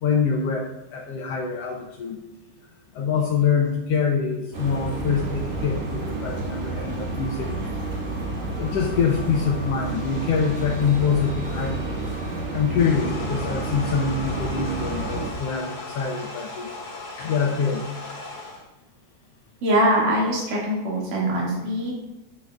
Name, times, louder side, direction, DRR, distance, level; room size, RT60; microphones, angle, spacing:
voice 1, 0.0-2.2 2.9-7.6 8.6-11.8 12.5-16.7 17.2-17.9, left 6 dB, 85° left, 0 dB, 1.4 m, -25 dB
sound 1, 4.5-15.3, right 2 dB, 65° right, 2.7 m, -30 dB
sound 2, 12.8-18.6, left 2 dB, 45° left, 1.8 m, -37 dB
voice 2, 19.6-21.9, equal, 80° right, -4 dB, 3.6 m, -22 dB
10.0 x 7.4 x 2.3 m, 0.98 s
omnidirectional pair, 3.7 m